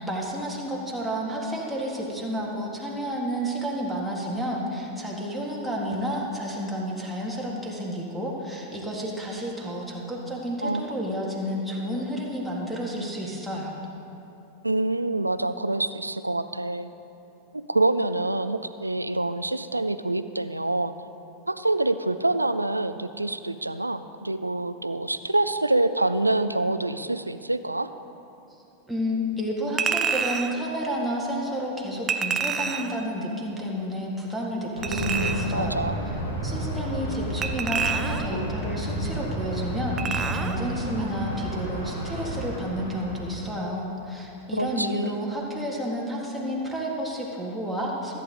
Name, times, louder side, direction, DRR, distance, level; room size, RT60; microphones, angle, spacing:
voice 1, 0.0-13.7 28.9-36.2 36.4-48.2, equal, ahead, -4 dB, 1.7 m, -31 dB
voice 2, 14.6-16.9 17.5-20.9 21.5-27.9 34.9-36.0 44.5-45.1, right 2 dB, 85° right, 12 dB, 0.4 m, -26 dB
Chink clink, 29.8-30.6 32.1-33.0 34.8-35.6 37.4-38.4 40.0-40.6 41.0-41.1, right 6 dB, 25° right, 0.6 m, -28 dB
Thunder, 34.7-43.6, right 1 dB, 75° left, 2.2 m, -31 dB
14.5 x 9.2 x 3.7 m, 2.9 s
figure-of-eight pair, 90°, 0 cm